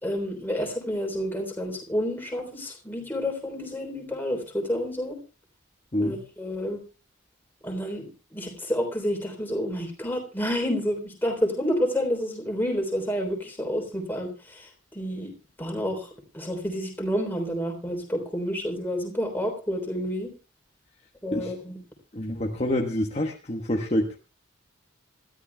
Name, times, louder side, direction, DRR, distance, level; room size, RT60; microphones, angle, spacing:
voice 1, 0.0-5.2 6.0-6.8 7.6-14.7 14.9-15.3 15.6-16.1 16.3-20.3 21.2-21.8, equal, 10° left, 2 dB, 3.5 m, -29 dB
voice 2, 22.1-24.2, left 1 dB, 30° left, 1 dB, 1.3 m, -27 dB
27.0 x 13.0 x 2.3 m, 0.31 s
head